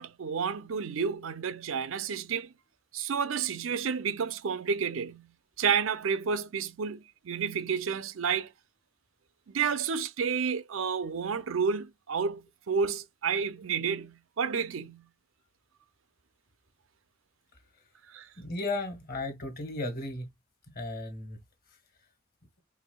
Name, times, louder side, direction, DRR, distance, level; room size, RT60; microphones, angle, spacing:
voice 1, 0.0-2.5 2.9-5.3 5.6-8.5 9.5-15.1 18.1-18.3, right 6 dB, 85° right, 0.5 m, -30 dB
voice 2, 18.4-20.3 20.7-21.4, left 2 dB, 50° left, 1.4 m, -35 dB
4.7 x 3.4 x 2.3 m
head